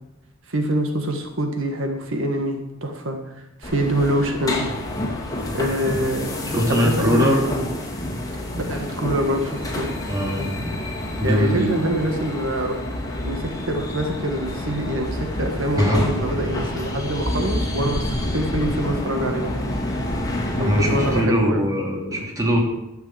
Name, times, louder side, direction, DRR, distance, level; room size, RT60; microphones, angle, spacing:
voice 1, 0.5-3.2 3.6-4.7 5.5-6.3 6.7-7.6 8.7-9.9 10.4-10.5 11.2-12.8 13.2-19.5 20.5-21.6 22.1-22.2, right 1 dB, 75° right, 3 dB, 1.6 m, -25 dB
sound 1, 3.6-21.2, left 1 dB, 20° left, 2.6 m, -28 dB
voice 2, 6.4-7.4 10.1-10.8 11.2-11.7 15.8-16.0 20.6-22.6, equal, 15° right, -2 dB, 2.6 m, -21 dB
11.5 x 6.9 x 7.9 m, 0.94 s
head